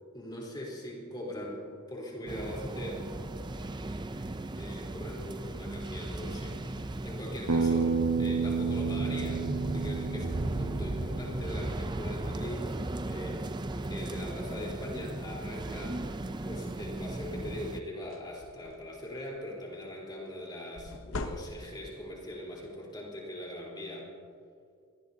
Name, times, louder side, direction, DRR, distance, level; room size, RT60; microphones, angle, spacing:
voice 1, 0.1-3.1 4.6-16.0 16.4-24.1, left 1 dB, 20° left, -3 dB, 3.8 m, -41 dB
sound 1, 2.3-17.8, right 2 dB, 20° right, 0.5 m, -36 dB
Bass guitar, 7.5-11.7, right 4 dB, 75° right, 0.9 m, -30 dB
sound 2, 18.1-19.1 20.8-22.0, left 2 dB, 60° left, 0.9 m, -41 dB
24.5 x 19.0 x 2.8 m, 2.3 s
head